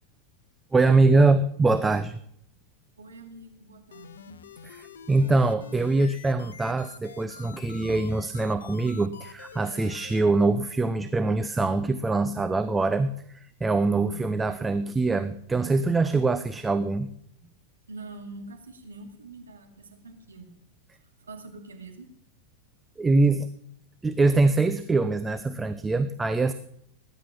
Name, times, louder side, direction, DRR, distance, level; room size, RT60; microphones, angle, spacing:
voice 1, 0.7-2.2 5.1-17.1 23.0-23.5 24.0-26.5, right 3 dB, 10° right, 11 dB, 0.7 m, -23 dB
voice 2, 3.0-4.4 17.9-20.5 20.9-22.1, right 2 dB, 75° right, 4 dB, 2.5 m, -45 dB
sound 1, 3.9-10.2, left 8 dB, 65° left, 0.8 m, -47 dB
19.0 x 10.5 x 6.0 m, 0.71 s
figure-of-eight pair, 90°, 0 cm